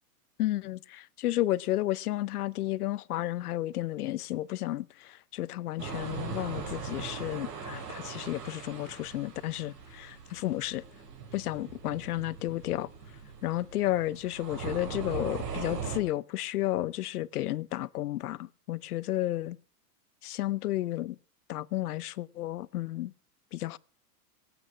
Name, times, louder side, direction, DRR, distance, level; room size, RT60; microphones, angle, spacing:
voice 1, 0.4-10.8 11.3-12.9 13.4-19.6 20.2-21.2 21.5-23.1 23.5-23.8, left 15 dB, 70° left, 0.8 m, -32 dB
sound 1, 5.8-16.0, right 5 dB, 80° right, 4.8 m, -40 dB
17.0 x 9.0 x 6.0 m
supercardioid pair, 175°, 47 cm